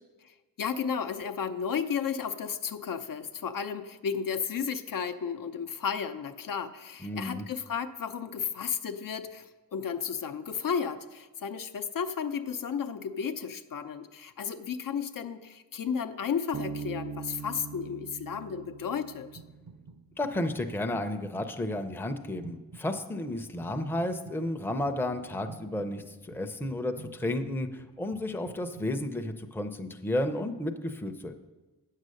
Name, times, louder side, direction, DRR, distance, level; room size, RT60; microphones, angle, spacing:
voice 1, 0.2-19.4, left 7 dB, 65° left, 7 dB, 0.7 m, -33 dB
voice 2, 7.0-7.5 20.2-31.3, left 1 dB, 5° left, 5 dB, 0.6 m, -32 dB
Bass guitar, 16.5-20.0, right 5 dB, 40° right, 0.5 m, -40 dB
sound 1, 19.3-20.0 20.2-29.1, right 4 dB, 90° right, 1.1 m, -50 dB
8.9 x 6.5 x 6.4 m, 1.2 s
wide cardioid pair, 115°, 35 cm